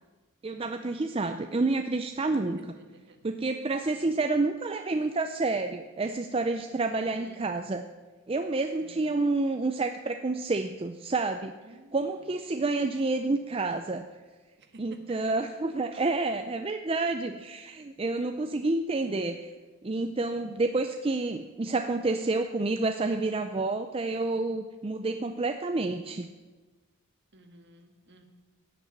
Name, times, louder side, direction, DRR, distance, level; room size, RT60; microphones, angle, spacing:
voice 1, 0.4-2.6 3.2-7.8 8.3-11.5 11.9-14.1 14.8-19.5 19.8-26.3, right 3 dB, 25° right, 7 dB, 0.5 m, -29 dB
voice 2, 2.6-3.2 3.9-4.1 6.9-7.4 8.8-9.1 11.6-12.1 14.6-14.7 15.1-15.2 20.2-20.5 27.3-28.2, right 2 dB, 50° right, 5 dB, 1.7 m, -53 dB
16.5 x 6.8 x 8.8 m, 1.3 s
head